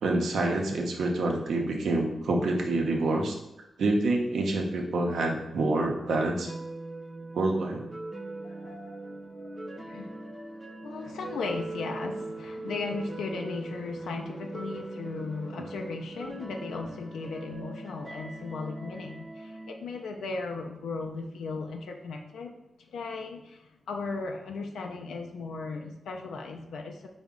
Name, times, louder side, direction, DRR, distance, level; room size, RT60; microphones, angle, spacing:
voice 1, 0.0-3.4 3.8-6.5 7.3-7.8, right 2 dB, 75° right, 1 dB, 0.5 m, -27 dB
sound 1, 6.5-19.7, right 2 dB, 25° right, 0.5 m, -40 dB
voice 2, 8.4-10.1 10.8-27.1, left 3 dB, 80° left, 2 dB, 0.3 m, -37 dB
3.7 x 2.1 x 3.6 m, 0.94 s
supercardioid pair, 45°, 0 cm